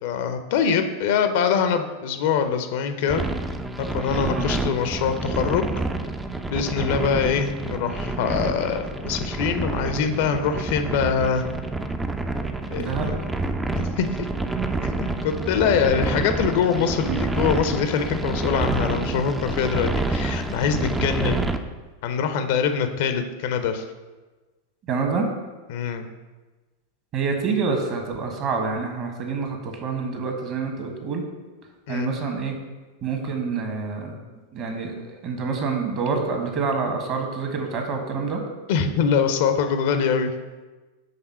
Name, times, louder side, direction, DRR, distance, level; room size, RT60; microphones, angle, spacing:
voice 1, 0.0-3.2 3.8-5.6 6.5-11.5 12.7-13.1 13.7-14.3 14.8-21.4 22.0-23.8 25.7-26.1 31.9-32.1 38.7-40.3, left 6 dB, 50° left, 8 dB, 0.6 m, -24 dB
sound 1, 3.1-21.6, right 2 dB, 10° right, 0.4 m, -28 dB
voice 2, 12.8-13.1 17.1-17.2 21.0-21.3 24.9-25.3 27.1-31.2 31.9-32.6 33.0-34.2 34.5-38.4, right 4 dB, 35° right, 3 dB, 1.2 m, -27 dB
6.7 x 3.5 x 5.6 m, 1.2 s
figure-of-eight pair, 90°, 0 cm